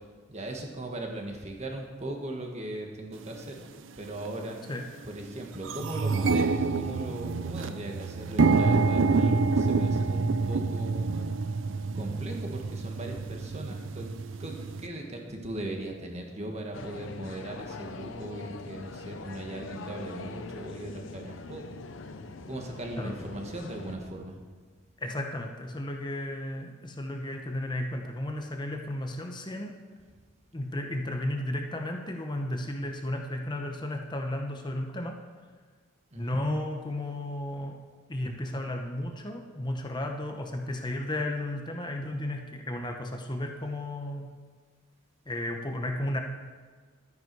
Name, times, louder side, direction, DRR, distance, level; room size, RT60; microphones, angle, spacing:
voice 1, 0.3-3.6 4.0-4.6 5.1-14.1 14.4-14.5 14.8-21.6 22.5-24.4 36.1-36.4, right 1 dB, 35° right, 1 dB, 1.6 m, -38 dB
sound 1, 3.3-3.4 4.2-4.4 4.8-4.9 5.2-14.9, right 4 dB, 65° right, 0.6 m, -27 dB
sound 2, 16.7-24.0, left 3 dB, 65° left, 0.7 m, -42 dB
voice 2, 25.0-29.7 30.5-35.2 36.1-37.8 38.1-44.3 45.3-46.2, left 1 dB, 20° left, 3 dB, 0.9 m, -33 dB
12.5 x 10.0 x 4.7 m, 1.5 s
head